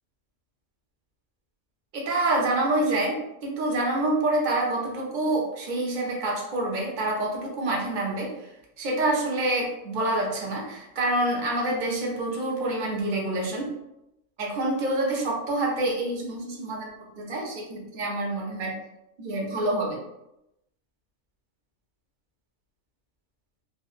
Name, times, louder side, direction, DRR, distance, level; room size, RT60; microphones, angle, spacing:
voice 1, 1.9-8.5 8.8-13.7 14.4-18.7 19.2-20.0, right 2 dB, 45° right, -2 dB, 0.7 m, -27 dB
3.7 x 2.0 x 2.5 m, 0.88 s
omnidirectional pair, 1.4 m